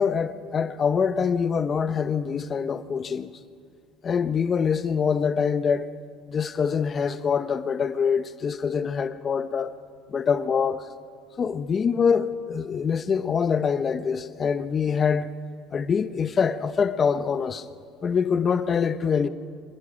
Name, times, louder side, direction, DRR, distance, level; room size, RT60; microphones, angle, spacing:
voice 1, 0.0-3.3 4.0-5.9 6.3-9.7 10.1-10.9 11.4-15.3 15.7-17.7 18.0-19.3, left 6 dB, 30° left, 0.7 m, -24 dB
25.5 x 19.5 x 6.3 m
cardioid pair, 145°, 0 cm